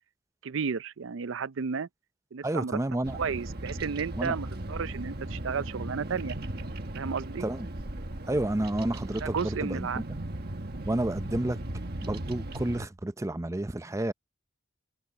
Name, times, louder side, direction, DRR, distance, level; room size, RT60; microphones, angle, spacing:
voice 1, 0.4-1.9 2.3-2.8 3.1-6.4 6.9-7.5 9.2-10.0, right 6 dB, 70° right, 0.5 m, -33 dB
voice 2, 2.4-3.2 4.2-4.4 7.4-7.7 8.3-10.0 10.9-11.6 12.0-14.1, right 1 dB, 15° right, 0.5 m, -30 dB
Bird vocalization bird call bird song, 3.0-12.9, right 1 dB, 50° right, 1.5 m, -37 dB
head